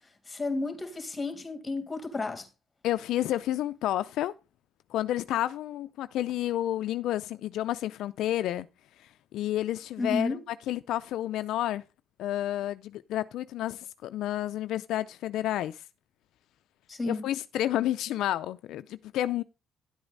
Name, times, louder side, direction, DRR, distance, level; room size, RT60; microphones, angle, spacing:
voice 1, 0.3-2.5 10.0-10.4 16.9-17.3, left 3 dB, 25° left, 2.6 m, -32 dB
voice 2, 2.8-4.3 4.9-8.7 9.3-10.3 10.7-11.8 12.2-15.8 17.1-19.4, left 13 dB, 85° left, 0.4 m, -30 dB
11.0 x 7.9 x 3.9 m
cardioid pair, 90°, 0 cm